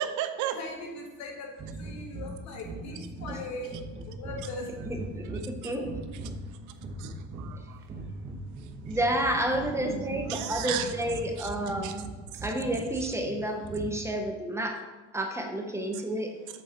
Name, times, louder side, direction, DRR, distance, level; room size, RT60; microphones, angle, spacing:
voice 1, 0.0-0.6 5.6-5.7 6.5-8.3 8.6-9.0 9.8-10.9 11.4-12.0 12.3-12.5, right 11 dB, 80° right, 10 dB, 0.6 m, -36 dB
voice 2, 0.5-3.8 4.1-4.7, left 2 dB, 65° left, 1 dB, 1.5 m, -40 dB
sound 1, 1.6-14.3, right 2 dB, 30° right, 1.0 m, -40 dB
voice 3, 4.9-6.0 7.5-7.7 8.9-12.1 12.4-14.8 15.1-16.4, right 1 dB, 10° right, 3 dB, 0.7 m, -30 dB
7.7 x 3.9 x 4.2 m, 1.2 s
cardioid pair, 125°, 30 cm